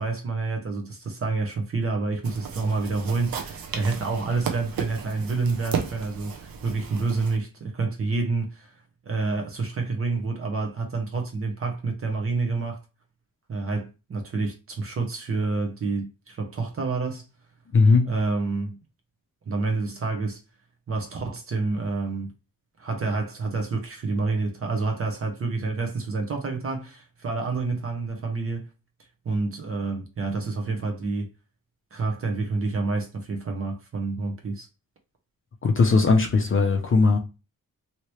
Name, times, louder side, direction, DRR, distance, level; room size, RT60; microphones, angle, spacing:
voice 1, 0.0-8.7 9.1-12.8 13.5-17.2 18.1-18.8 19.5-20.4 20.9-22.3 22.8-28.6 29.2-31.3 31.9-34.7, right 3 dB, 40° right, 0.7 m, -28 dB
sound 1, 2.2-7.4, right 7 dB, 85° right, 0.7 m, -34 dB
voice 2, 17.7-18.1 35.6-37.2, left 4 dB, 40° left, 0.5 m, -19 dB
3.1 x 2.8 x 3.0 m
wide cardioid pair, 175°, 34 cm